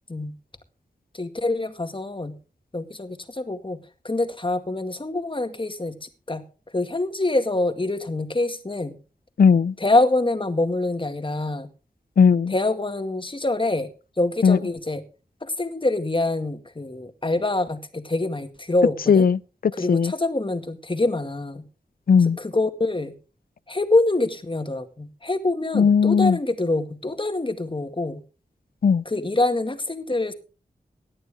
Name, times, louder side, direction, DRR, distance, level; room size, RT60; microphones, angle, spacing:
voice 1, 1.1-2.3 2.7-3.8 4.0-6.4 6.7-9.0 9.8-11.7 12.5-13.9 14.2-15.0 15.4-19.3 19.7-21.6 22.2-23.1 23.7-28.2 29.1-30.3, left 2 dB, 30° left, 2.1 m, -25 dB
voice 2, 9.4-9.7 12.2-12.5 14.4-14.6 19.1-20.1 22.1-22.4 25.7-26.4 28.8-29.0, left 6 dB, 65° left, 0.6 m, -17 dB
18.0 x 11.0 x 3.6 m
wide cardioid pair, 60°, 16 cm